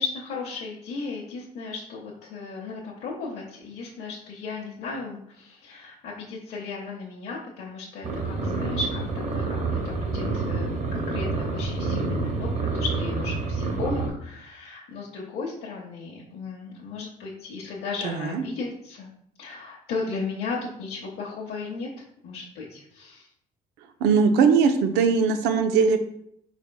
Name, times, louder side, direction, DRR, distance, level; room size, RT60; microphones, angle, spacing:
voice 1, 0.0-9.0 9.3-19.1 19.4-21.9 22.2-23.3, left 4 dB, 80° left, -3 dB, 0.8 m, -35 dB
sound 1, 8.0-14.1, right 3 dB, 45° right, 1.0 m, -28 dB
voice 2, 18.0-18.4 24.0-26.0, right 5 dB, 90° right, 7 dB, 0.5 m, -20 dB
4.2 x 4.2 x 2.3 m, 0.70 s
cardioid pair, 110°, 17 cm